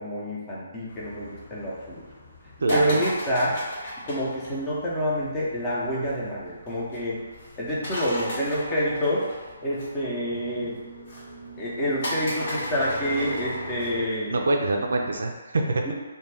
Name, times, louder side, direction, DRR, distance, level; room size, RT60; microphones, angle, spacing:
voice 1, 0.0-2.0 2.7-3.6 4.1-7.2 7.6-9.2 9.6-10.8 11.6-14.4 15.9-16.0, equal, 20° left, -6 dB, 0.7 m, -27 dB
sound 1, 0.9-14.5, equal, 50° left, 1.1 m, -38 dB
voice 2, 2.6-3.0 14.3-15.9, right 2 dB, 70° right, 2 dB, 0.4 m, -25 dB
sound 2, 6.6-14.1, left 1 dB, 75° left, 0.9 m, -41 dB
2.3 x 2.2 x 3.3 m, 1.3 s
figure-of-eight pair, 140°, 0 cm